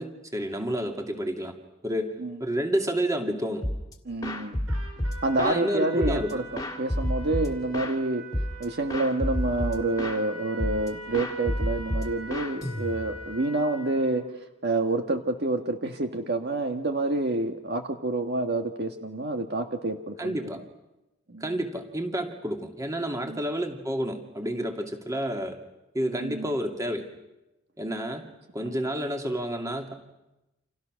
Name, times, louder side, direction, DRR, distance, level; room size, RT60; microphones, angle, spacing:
voice 1, 0.0-1.5 1.8-3.6 5.4-6.4 20.2-20.6 21.4-25.6 25.9-27.0 27.8-28.3 28.5-29.9, right 1 dB, 15° right, 3 dB, 2.5 m, -30 dB
sound 1, 3.6-3.9 4.2-5.6 6.0-8.0 8.3-8.6 8.9-10.2 10.6-10.9 11.1-13.2, equal, 15° left, 2.3 m, -30 dB
voice 2, 4.0-4.6 5.2-8.2 8.6-14.3 14.6-20.5 21.3-21.6 23.2-23.4 26.1-26.6 28.6-28.7, right 2 dB, 50° right, 5 dB, 1.6 m, -28 dB
Trumpet, 4.7-14.2, right 1 dB, 90° right, 6.6 m, -43 dB
29.5 x 27.5 x 6.5 m, 0.98 s
head